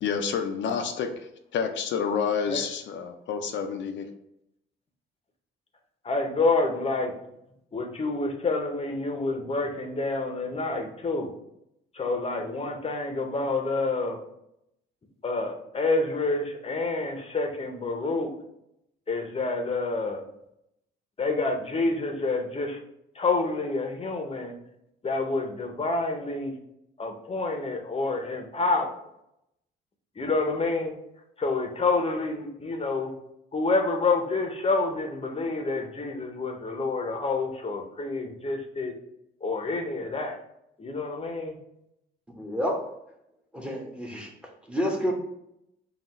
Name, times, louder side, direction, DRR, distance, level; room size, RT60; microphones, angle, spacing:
voice 1, 0.0-4.1, left 6 dB, 70° left, 5 dB, 0.5 m, -29 dB
voice 2, 6.0-7.1 7.7-11.3 11.9-14.2 15.2-18.3 19.1-20.2 21.2-22.8 23.2-24.5 25.0-26.5 27.0-28.9 30.2-30.9 31.4-33.1 33.5-38.9 39.4-40.4 40.8-41.6, left 3 dB, 30° left, 4 dB, 0.8 m, -28 dB
voice 3, 42.3-42.8 43.5-44.3 44.7-45.1, equal, 5° right, 1 dB, 1.0 m, -29 dB
5.4 x 2.4 x 3.0 m, 0.79 s
cardioid pair, 90°, 20 cm